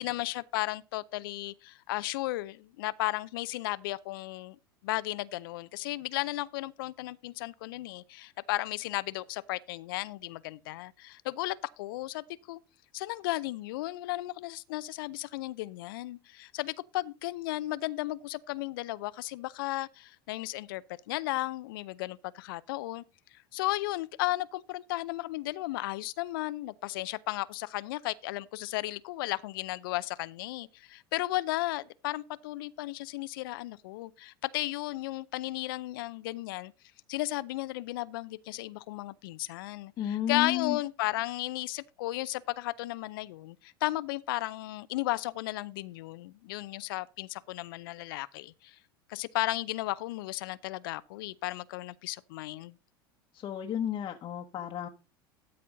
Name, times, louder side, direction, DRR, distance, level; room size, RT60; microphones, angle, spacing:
voice 1, 0.0-4.6 4.8-12.6 12.9-23.0 23.3-36.7 37.1-48.8 49.1-52.8, left 18 dB, 70° left, 0.5 m, -34 dB
voice 2, 40.0-40.8 53.3-54.9, left 11 dB, 40° left, 1.1 m, -32 dB
12.5 x 4.3 x 5.1 m
hypercardioid pair, 90°, 12 cm